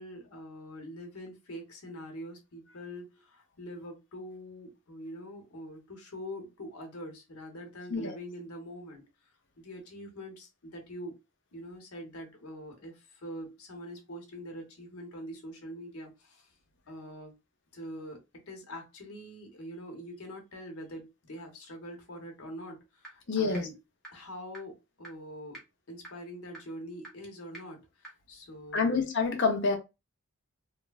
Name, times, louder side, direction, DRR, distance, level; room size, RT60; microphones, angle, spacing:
voice 1, 0.0-11.2 11.5-16.5 16.9-17.4 17.7-23.8 24.1-25.6 25.9-28.9, equal, 85° left, 1.0 m, -44 dB
sound 1, 23.0-23.1 23.5-23.6 24.0-24.1 24.5-24.6 25.0-25.1 25.5-25.6 26.0-26.1 26.5-26.6 27.0-27.1 27.5-27.6 28.0-28.1, right 1 dB, ahead, 0.8 m, -44 dB
voice 2, 23.3-23.7 28.7-29.8, left 4 dB, 55° left, 0.7 m, -27 dB
3.1 x 2.1 x 2.3 m
head